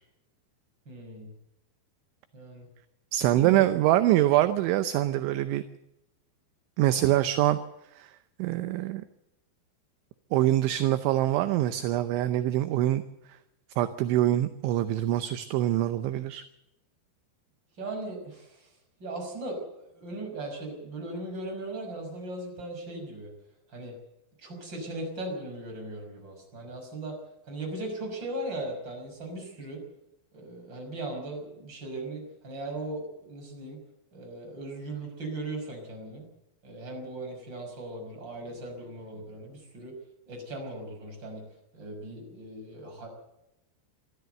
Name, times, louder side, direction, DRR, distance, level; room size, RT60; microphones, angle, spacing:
voice 1, 0.9-1.3 2.3-2.7 3.3-3.6 7.0-7.1 8.6-8.8 17.8-18.7 19.0-23.3 23.7-24.0 24.4-27.2 27.4-29.8 30.3-33.8 34.1-36.3 36.6-40.0 40.3-41.4 41.7-43.1, right 2 dB, 20° right, 2 dB, 6.0 m, -38 dB
voice 2, 3.1-5.6 6.8-7.6 7.9-8.1 8.4-9.0 10.3-13.0 13.8-16.4, right 14 dB, 75° right, 10 dB, 3.0 m, -24 dB
25.0 x 13.5 x 7.9 m, 0.88 s
omnidirectional pair, 5.9 m